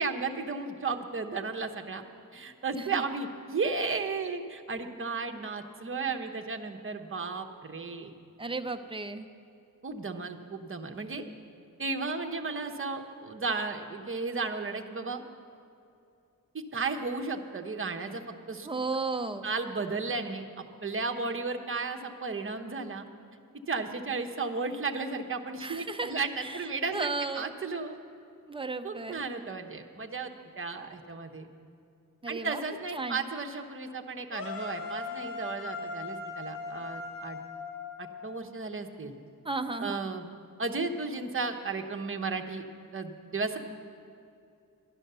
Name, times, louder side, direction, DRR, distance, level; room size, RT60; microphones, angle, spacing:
voice 1, 0.0-2.0 2.3-8.1 9.8-11.2 11.8-15.2 16.5-18.7 19.4-20.4 20.8-23.1 23.7-28.0 28.8-30.3 30.6-31.5 32.3-37.4 38.0-39.1 39.8-40.3 40.6-42.6 42.9-43.6, right 4 dB, 35° right, 4 dB, 0.9 m, -34 dB
voice 2, 8.4-9.3 18.6-19.5 25.6-26.1 26.4-27.5 28.5-29.2 32.2-32.6 32.9-33.2 39.4-40.1, right 3 dB, 15° right, 7 dB, 0.6 m, -34 dB
sound 1, 34.3-38.4, left 4 dB, 70° left, 2.3 m, -39 dB
12.0 x 10.5 x 6.7 m, 2.6 s
wide cardioid pair, 105°, 34 cm